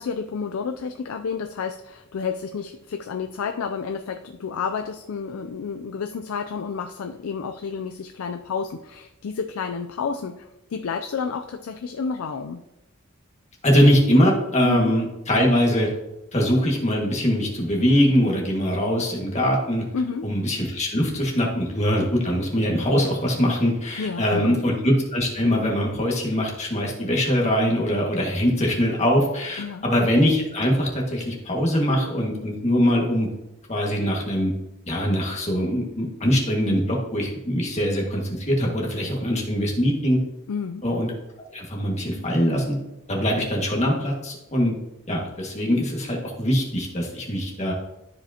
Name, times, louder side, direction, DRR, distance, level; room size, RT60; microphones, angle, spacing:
voice 1, 0.0-12.6 14.6-14.9 19.9-20.3 24.0-24.6 29.6-29.8 40.5-40.9, left 5 dB, 90° left, 6 dB, 0.4 m, -30 dB
voice 2, 13.6-15.9 16.3-19.8 20.2-33.3 33.7-34.5 34.9-40.2 40.8-41.1 41.5-42.7 43.1-44.7 45.1-47.7, equal, 35° left, -1 dB, 1.8 m, -22 dB
13.0 x 5.0 x 2.8 m, 0.93 s
head